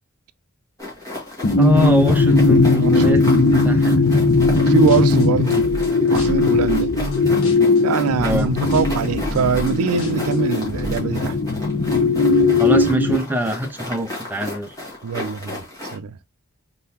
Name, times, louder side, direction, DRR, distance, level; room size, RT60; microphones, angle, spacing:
sound 1, 0.8-16.0, left 1 dB, 15° left, 1.8 m, -34 dB
sound 2, 1.4-13.2, left 3 dB, 45° left, 0.5 m, -18 dB
voice 1, 1.6-4.1 8.2-8.5 12.6-14.7, equal, 10° right, 0.5 m, -23 dB
voice 2, 2.8-3.2 4.6-5.7 6.1-6.9 7.8-11.4 15.0-15.6 15.9-16.2, right 6 dB, 90° right, 0.4 m, -23 dB
sound 3, 4.3-4.6 4.9-7.8 8.1-11.0, equal, 75° left, 1.4 m, -31 dB
3.9 x 3.8 x 2.8 m
head